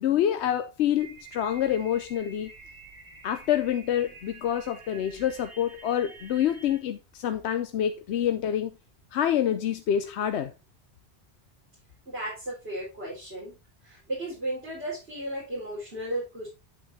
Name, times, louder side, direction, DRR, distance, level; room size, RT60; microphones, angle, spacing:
voice 1, 0.0-2.5 3.2-8.7 9.1-10.5, left 10 dB, 75° left, 0.9 m, -27 dB
sound 1, 0.9-6.8, right 4 dB, 85° right, 1.7 m, -49 dB
voice 2, 12.1-13.6 13.8-16.5, right 1 dB, 65° right, 4.1 m, -34 dB
8.5 x 8.3 x 2.7 m
omnidirectional pair, 1.1 m